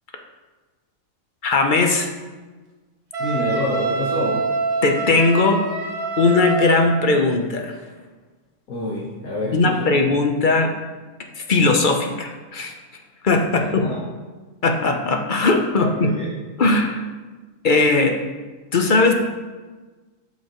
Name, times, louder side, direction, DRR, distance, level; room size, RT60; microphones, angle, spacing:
voice 1, 1.4-2.1 4.8-5.6 6.2-7.8 9.5-10.7 11.3-12.7 13.2-13.8 14.6-16.1 16.6-17.0 17.6-18.1 18.7-19.1, left 3 dB, 45° left, 4 dB, 0.7 m, -18 dB
Wind instrument woodwind instrument, 3.1-7.0, right 4 dB, 50° right, 1.6 m, -26 dB
voice 2, 3.2-4.4 8.7-9.5 10.1-10.2 13.4-14.0 15.8-16.3, left 1 dB, 85° left, -5 dB, 1.6 m, -27 dB
12.0 x 5.7 x 3.0 m, 1.3 s
omnidirectional pair, 1.5 m